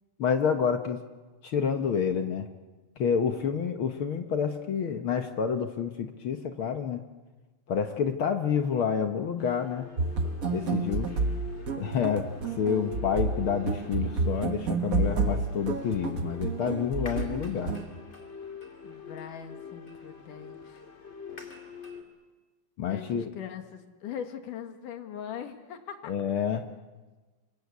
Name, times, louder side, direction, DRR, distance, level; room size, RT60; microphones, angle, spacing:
voice 1, 0.2-1.0 1.4-2.5 3.0-7.0 7.7-9.9 10.5-11.1 11.8-17.8 22.8-23.3 26.1-26.7, left 7 dB, 60° left, 7 dB, 1.4 m, -28 dB
sound 1, 9.4-22.0, left 6 dB, 25° left, 2.4 m, -45 dB
sound 2, 10.0-17.8, right 3 dB, 55° right, 0.9 m, -30 dB
voice 2, 18.8-20.8 22.8-26.1, left 8 dB, 85° left, 7 dB, 3.3 m, -41 dB
28.5 x 24.5 x 8.3 m, 1.3 s
omnidirectional pair, 3.6 m